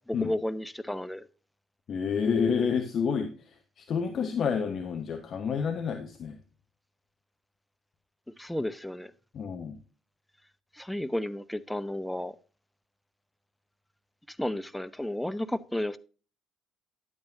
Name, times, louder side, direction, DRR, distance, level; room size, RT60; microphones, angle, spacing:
voice 1, 0.1-1.3 8.4-9.1 10.7-12.4 14.3-16.0, left 1 dB, 5° left, 0.6 m, -32 dB
voice 2, 1.9-3.3 3.8-6.4 9.3-9.8, left 6 dB, 50° left, 1.0 m, -29 dB
10.5 x 8.5 x 2.6 m
figure-of-eight pair, 50°, 0 cm